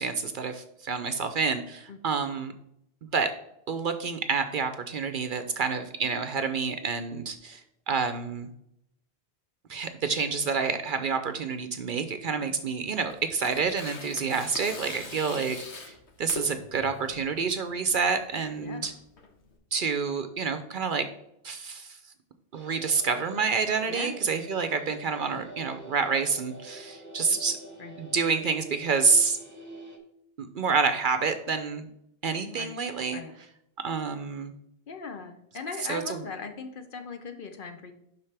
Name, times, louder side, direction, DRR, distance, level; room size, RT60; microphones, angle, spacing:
voice 1, 0.0-2.5 3.1-3.3 3.7-7.6 7.9-8.5 9.7-15.6 16.2-18.9 19.7-21.1 21.4-22.0 22.5-27.6 28.0-29.4 30.4-31.9 32.2-33.2 33.8-34.5 35.9-36.0, right 5 dB, 55° right, 9 dB, 0.7 m, -28 dB
Tearing, 12.8-19.5, left 3 dB, 80° left, 1.4 m, -42 dB
sound 1, 22.5-30.0, right 1 dB, 15° right, 1.0 m, -46 dB
voice 2, 23.9-24.2 27.3-27.4 27.8-28.0 32.5-32.8 33.1-33.3 34.9-37.9, left 4 dB, 55° left, 7 dB, 0.8 m, -39 dB
11.0 x 4.1 x 3.3 m, 0.77 s
omnidirectional pair, 1.1 m